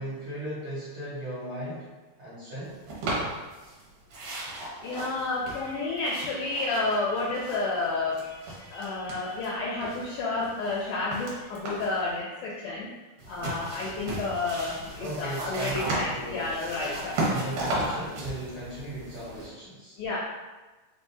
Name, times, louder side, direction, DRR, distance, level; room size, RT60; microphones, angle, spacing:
voice 1, 0.0-1.9 2.2-2.8 15.0-16.5 17.2-19.9, right 1 dB, 90° right, -11 dB, 1.2 m, -37 dB
sound 1, 2.9-3.8 4.1-7.9 8.1-9.5 9.8-12.0 13.2-19.5, right 1 dB, 65° right, 2.2 m, -35 dB
voice 2, 4.8-13.0 13.3-17.2 17.8-18.1 20.0-20.2, left 3 dB, 85° left, -5 dB, 1.9 m, -31 dB
5.3 x 3.3 x 2.7 m, 1.2 s
omnidirectional pair, 4.3 m